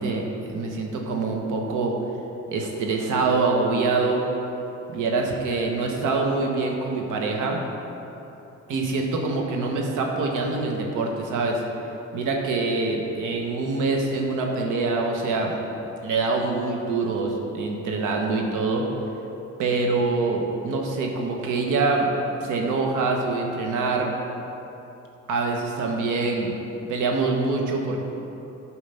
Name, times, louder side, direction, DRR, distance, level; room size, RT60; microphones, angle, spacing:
voice 1, 0.0-1.9 2.5-4.2 4.9-7.6 8.7-11.6 12.1-15.5 16.0-18.9 19.6-22.1 22.4-24.1 25.3-26.5 26.9-28.0, right 3 dB, 85° right, 1 dB, 1.2 m, -25 dB
8.8 x 4.7 x 5.7 m, 3.0 s
cardioid pair, 90°, 30 cm